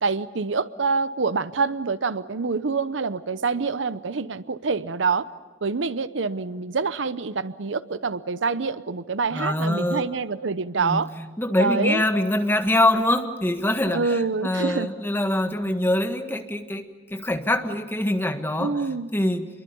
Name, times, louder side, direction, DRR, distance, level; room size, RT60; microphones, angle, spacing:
voice 1, 0.0-5.3 5.6-11.1 11.6-12.0 13.9-14.9 18.6-19.1, right 4 dB, 85° right, 15 dB, 0.8 m, -26 dB
voice 2, 9.3-10.1 10.8-11.0 11.4-18.7 19.1-19.5, left 1 dB, 10° left, 6 dB, 1.6 m, -24 dB
27.5 x 22.5 x 7.1 m, 1.2 s
head